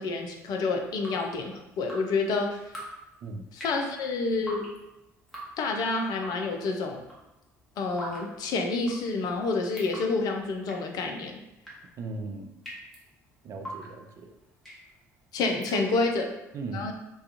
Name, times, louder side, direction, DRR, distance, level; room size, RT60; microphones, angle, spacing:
voice 1, 0.0-2.6 3.5-4.7 5.6-7.0 7.8-11.4 15.3-16.2 16.7-16.9, left 3 dB, 50° left, 3 dB, 0.4 m, -28 dB
Drip, 0.8-16.3, right 1 dB, 5° left, 0.8 m, -45 dB
voice 2, 12.0-12.5 13.4-14.3 15.7-15.8 16.5-16.9, right 3 dB, 40° right, 5 dB, 0.4 m, -36 dB
2.3 x 2.2 x 2.6 m, 0.92 s
figure-of-eight pair, 55°, 9 cm